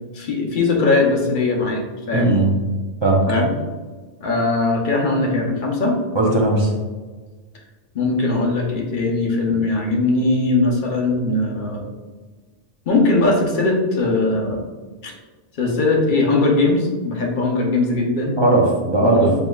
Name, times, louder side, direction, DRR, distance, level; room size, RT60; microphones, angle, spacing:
voice 1, 0.1-2.4 3.3-3.5 4.2-6.0 7.9-11.8 12.9-14.6 15.0-15.1 15.6-18.4 19.0-19.3, left 2 dB, 55° left, 0 dB, 0.9 m, -20 dB
voice 2, 2.1-2.5 3.0-3.2 6.1-6.7 9.5-9.6 18.4-19.3, right 2 dB, 35° right, -2 dB, 0.5 m, -17 dB
6.6 x 2.8 x 2.3 m, 1.4 s
omnidirectional pair, 1.1 m